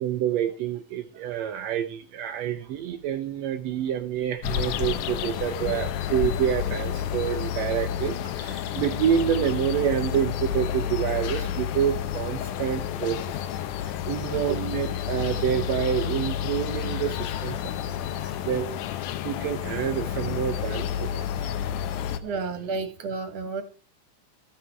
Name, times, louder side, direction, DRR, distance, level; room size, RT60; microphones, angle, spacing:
voice 1, 0.0-13.5 13.8-18.0 18.2-21.8, right 10 dB, 75° right, 5 dB, 1.8 m, -28 dB
sound 1, 4.4-22.2, left 10 dB, 85° left, 2.3 m, -30 dB
voice 2, 17.7-18.4 21.5-21.9 22.2-23.6, right 4 dB, 60° right, 7 dB, 2.5 m, -34 dB
14.0 x 5.9 x 4.5 m, 0.40 s
omnidirectional pair, 3.5 m